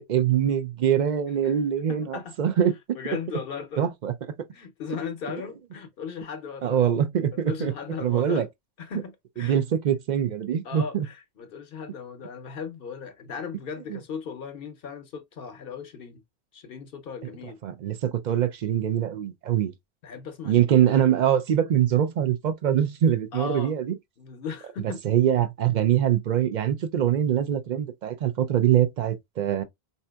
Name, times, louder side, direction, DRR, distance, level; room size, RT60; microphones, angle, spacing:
voice 1, 0.0-2.7 3.8-4.1 6.6-7.7 8.0-8.5 9.4-11.1 13.9-14.0 17.6-19.7 20.4-23.8 25.0-29.6, right 10 dB, 55° right, 0.6 m, -23 dB
voice 2, 1.9-2.3 2.9-3.9 4.5-6.8 7.4-8.5 8.8-9.6 10.6-16.2 16.5-17.6 20.0-20.9 23.3-23.7 24.2-25.0, left 6 dB, 65° left, 0.8 m, -37 dB
4.2 x 2.7 x 2.2 m
omnidirectional pair, 1.0 m